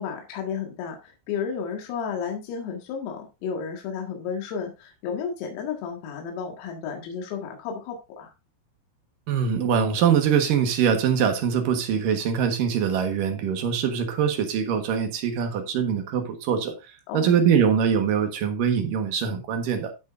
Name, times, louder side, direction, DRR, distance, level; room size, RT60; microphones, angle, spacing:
voice 1, 0.0-8.3 17.1-17.4, left 6 dB, 80° left, 4.5 m, -32 dB
voice 2, 9.3-16.7 17.1-19.9, right 7 dB, 70° right, 2.1 m, -23 dB
13.5 x 8.2 x 2.6 m
omnidirectional pair, 6.0 m